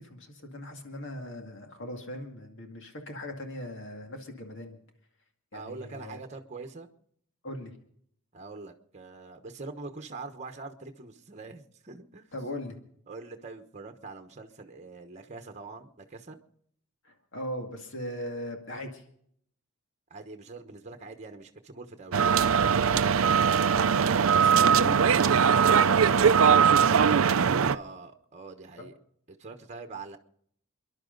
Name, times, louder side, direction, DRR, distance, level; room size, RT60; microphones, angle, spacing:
voice 1, 0.0-4.8 5.5-6.2 7.4-7.8 12.3-12.8 17.0-19.0 22.8-24.0 24.4-27.2 28.8-28.9, left 1 dB, 60° left, 3 dB, 2.2 m, -39 dB
voice 2, 5.5-6.9 8.3-12.3 13.1-16.4 20.1-22.2 23.7-24.8 27.5-29.0 29.3-30.2, right 3 dB, 30° right, 6 dB, 1.1 m, -43 dB
sound 1, 22.1-27.8, right 7 dB, 65° right, 0.5 m, -21 dB
28.0 x 11.5 x 4.0 m, 0.67 s
head